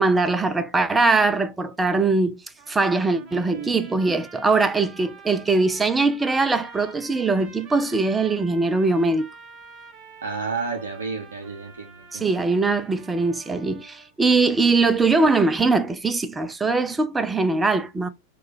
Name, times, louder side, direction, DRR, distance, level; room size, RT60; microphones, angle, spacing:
voice 1, 0.0-2.4 2.7-9.3 12.1-18.1, right 3 dB, 10° right, 0.4 m, -21 dB
sound 1, 2.6-14.1, right 5 dB, 30° right, 0.8 m, -47 dB
voice 2, 3.2-3.8 10.2-12.2, right 4 dB, 70° right, 0.5 m, -32 dB
4.5 x 2.2 x 3.2 m
figure-of-eight pair, 90°, 0 cm